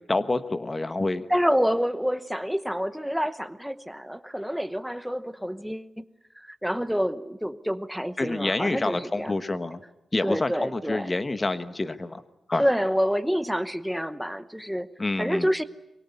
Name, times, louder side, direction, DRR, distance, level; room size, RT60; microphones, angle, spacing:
voice 1, 0.1-1.2 8.2-9.8 10.1-12.2 12.5-12.7 15.0-15.5, left 2 dB, 20° left, 11 dB, 1.2 m, -27 dB
voice 2, 1.3-6.0 6.5-9.3 10.2-11.1 12.6-14.9 15.2-15.6, equal, ahead, 11 dB, 0.9 m, -27 dB
24.0 x 23.5 x 9.4 m, 0.86 s
wide cardioid pair, 180°, 0 cm